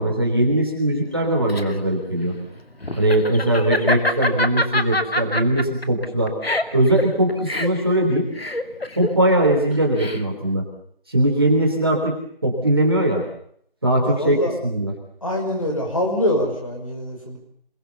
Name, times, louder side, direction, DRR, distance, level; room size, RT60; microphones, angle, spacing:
voice 1, 0.0-2.3 2.9-6.3 6.7-8.3 9.0-10.7 11.1-13.2 13.8-14.9 15.7-15.8, right 1 dB, 25° right, 0 dB, 3.5 m, -20 dB
Laughter, 1.1-10.5, left 1 dB, 80° left, 2.4 m, -25 dB
voice 2, 14.0-14.5 15.2-17.4, left 1 dB, 35° left, 2 dB, 5.5 m, -24 dB
27.5 x 22.0 x 7.0 m, 0.66 s
figure-of-eight pair, 175°, 30 cm